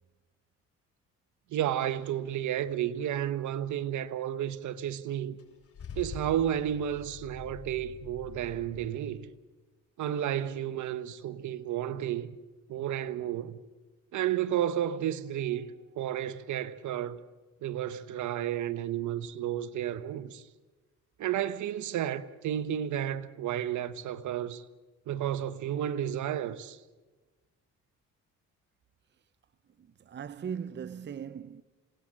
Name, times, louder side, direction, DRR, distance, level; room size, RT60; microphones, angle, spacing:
voice 1, 1.5-5.4 6.0-9.3 10.0-12.3 12.7-13.6 14.1-17.2 17.6-20.4 21.2-24.6 25.1-26.8, right 11 dB, 75° right, 1.0 m, -32 dB
Car / Engine starting / Idling, 5.4-8.9, left 6 dB, 50° left, 3.5 m, -45 dB
voice 2, 29.8-31.6, right 7 dB, 35° right, 0.7 m, -39 dB
28.0 x 18.0 x 6.3 m
cardioid pair, 90°, 30 cm